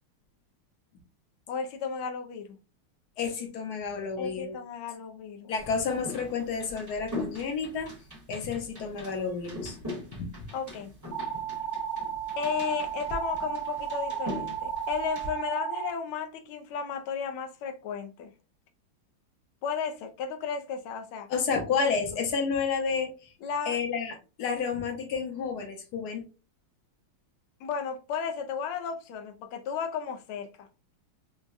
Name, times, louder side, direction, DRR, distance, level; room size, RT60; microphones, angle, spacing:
voice 1, 1.5-2.6 4.2-5.6 10.5-10.9 12.4-18.3 19.6-21.3 21.8-22.0 23.4-23.8 27.6-30.7, left 6 dB, 80° left, 1.5 m, -34 dB
voice 2, 3.2-4.6 5.5-7.9 8.3-9.8 10.1-10.3 21.3-23.3 23.7-26.2, left 5 dB, 60° left, 1.2 m, -30 dB
sound 1, 5.6-15.3, left 1 dB, 15° right, 0.7 m, -41 dB
sound 2, 11.1-15.9, right 8 dB, 65° right, 1.4 m, -33 dB
4.8 x 2.2 x 2.5 m
omnidirectional pair, 2.3 m